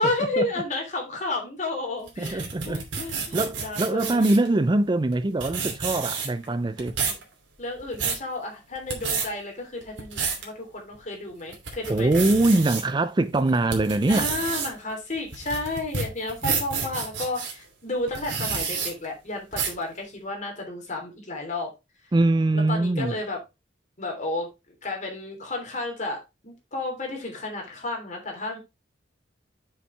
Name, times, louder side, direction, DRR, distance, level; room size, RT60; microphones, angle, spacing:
voice 1, 0.0-4.3 7.0-7.2 7.6-12.1 14.1-21.7 22.5-23.4 24.0-24.5 24.8-28.6, left 2 dB, 40° left, 3.2 m, -32 dB
sound 1, 2.1-4.5 5.1-5.2 5.4-6.4 6.8-7.2 7.7-8.2 8.8-9.3 9.8-10.4 10.9-11.0 11.5-12.8 13.3-17.5 18.1-18.9 19.5-19.8, right 5 dB, 75° right, 2.9 m, -29 dB
voice 2, 2.2-3.0 3.3-7.0 11.9-14.3 22.1-23.2, right 2 dB, 25° right, 0.4 m, -23 dB
7.3 x 7.0 x 3.3 m
head